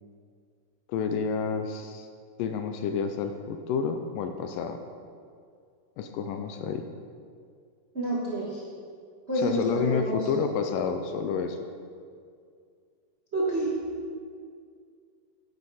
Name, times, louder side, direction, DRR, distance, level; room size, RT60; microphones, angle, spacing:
voice 1, 0.9-2.1 2.4-4.8 6.0-6.9 9.4-11.7, left 6 dB, 80° left, 7 dB, 2.1 m, -29 dB
voice 2, 7.9-8.6 9.3-10.3 13.3-13.7, right 1 dB, 40° right, -7 dB, 0.9 m, -28 dB
11.0 x 9.8 x 4.2 m, 2.2 s
omnidirectional pair, 4.1 m